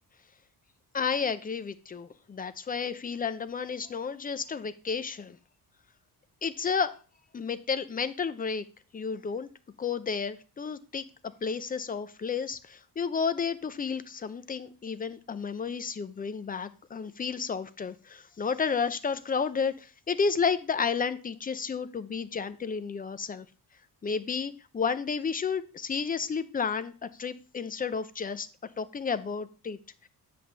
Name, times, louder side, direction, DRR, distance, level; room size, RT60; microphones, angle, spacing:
voice 1, 0.9-5.4 6.4-7.0 7.3-8.6 8.9-9.5 9.8-11.0 11.4-23.5 24.0-28.5 28.8-29.8, left 5 dB, 20° left, 13 dB, 0.4 m, -31 dB
7.8 x 3.4 x 6.4 m, 0.35 s
cardioid pair, 135°, 40 cm